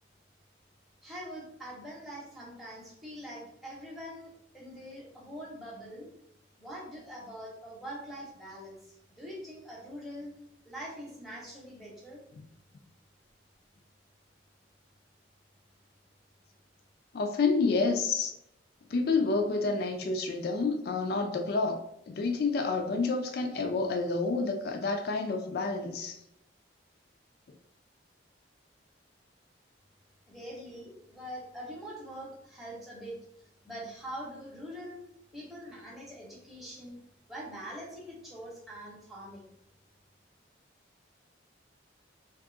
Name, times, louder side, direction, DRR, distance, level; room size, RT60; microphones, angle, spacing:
voice 1, 1.0-6.1 6.6-10.3 10.6-12.2 30.3-33.2 33.6-35.0 35.3-37.0 37.3-39.5, equal, ahead, -4 dB, 0.7 m, -43 dB
voice 2, 17.1-18.3 18.9-26.2, left 4 dB, 50° left, 4 dB, 0.3 m, -29 dB
2.6 x 2.3 x 3.7 m, 0.77 s
head